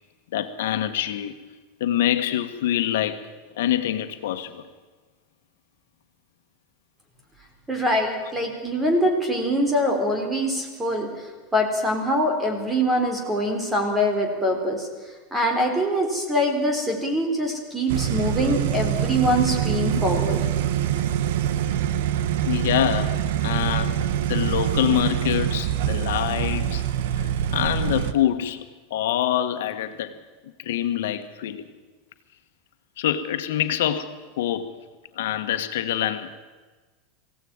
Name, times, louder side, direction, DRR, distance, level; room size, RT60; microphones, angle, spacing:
voice 1, 0.3-1.4 1.8-4.7 10.8-10.9 22.5-26.8 27.2-30.2 30.6-31.7 33.0-34.8 35.1-36.4, left 11 dB, 85° left, 1.6 m, -26 dB
voice 2, 7.7-11.1 11.5-14.9 15.3-20.4, equal, 5° right, 3.7 m, -23 dB
sound 1, 17.9-28.1, right 10 dB, 70° right, 1.3 m, -25 dB
22.5 x 16.5 x 8.9 m
supercardioid pair, 165°, 0 cm